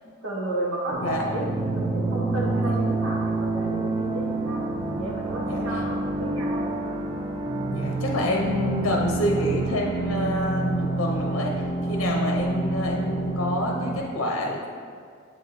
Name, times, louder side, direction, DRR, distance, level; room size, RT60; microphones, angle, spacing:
voice 1, 0.0-1.5 1.7-4.6 4.9-6.7, right 1 dB, 65° right, -3 dB, 1.3 m, -32 dB
sound 1, 0.9-14.0, right 2 dB, 20° right, 0.5 m, -27 dB
voice 2, 5.5-5.8 7.7-14.7, left 1 dB, 70° left, 0 dB, 0.8 m, -28 dB
7.6 x 4.9 x 3.1 m, 2.2 s
head